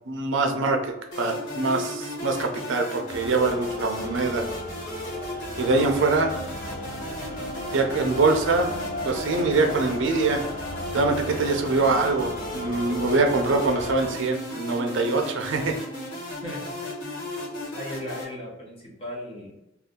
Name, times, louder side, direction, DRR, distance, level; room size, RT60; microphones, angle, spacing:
voice 1, 0.1-4.5 5.6-6.3 7.7-8.7 9.1-10.5 10.9-15.8, right 3 dB, 65° right, 4 dB, 0.5 m, -24 dB
sound 1, 1.1-18.2, left 1 dB, 70° left, 1.3 m, -35 dB
sound 2, 3.1-14.1, equal, 45° left, 0.6 m, -36 dB
voice 2, 5.7-6.2 16.4-16.9 17.7-19.6, left 1 dB, 30° left, -5 dB, 0.9 m, -37 dB
2.7 x 2.3 x 3.5 m, 0.90 s
head